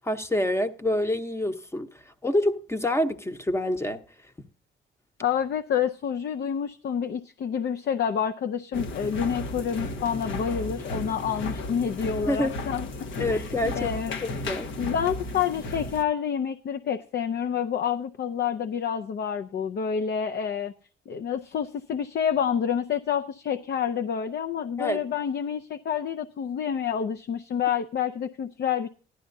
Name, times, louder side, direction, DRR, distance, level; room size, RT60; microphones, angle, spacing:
voice 1, 0.0-1.9 2.2-4.0 12.3-12.5 13.2-13.9 14.2-14.7 24.8-25.0, left 1 dB, 15° left, 0.9 m, -27 dB
voice 2, 5.2-12.9 13.2-13.5 13.8-14.2 14.8-20.7 21.1-28.9, left 8 dB, 55° left, 0.6 m, -28 dB
sound 1, 8.7-16.0, left 2 dB, 75° left, 1.1 m, -34 dB
14.5 x 11.5 x 2.7 m
cardioid pair, 90°, 20 cm